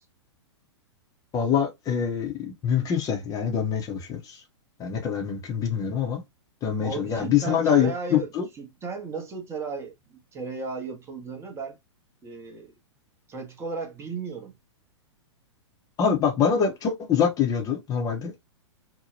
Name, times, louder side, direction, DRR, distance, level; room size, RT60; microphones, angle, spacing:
voice 1, 1.3-4.4 4.8-6.2 6.6-8.5 16.0-18.4, left 7 dB, 25° left, 0.7 m, -25 dB
voice 2, 6.8-8.3 8.5-11.8 12.2-12.7 13.3-14.5, right 4 dB, 15° right, 0.7 m, -35 dB
2.8 x 2.1 x 2.9 m
figure-of-eight pair, 105°, 15 cm